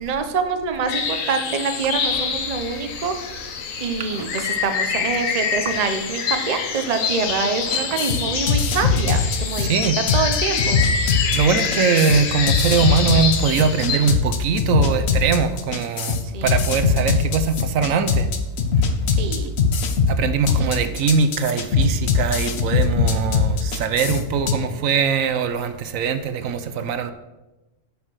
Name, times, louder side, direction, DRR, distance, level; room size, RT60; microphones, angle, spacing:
voice 1, 0.0-3.1 3.8-9.7 10.1-10.8 16.3-16.7 17.1-17.2 19.2-19.5 20.5-20.9, right 5 dB, 35° right, 0.7 m, -26 dB
sound 1, 0.9-14.1, left 6 dB, 75° left, 1.3 m, -26 dB
voice 2, 4.0-4.5 7.7-7.9 9.6-10.0 11.3-18.3 20.1-27.1, right 6 dB, 80° right, 1.1 m, -22 dB
sound 2, 7.7-24.5, left 5 dB, 55° left, 1.0 m, -21 dB
8.2 x 5.8 x 6.2 m
omnidirectional pair, 1.4 m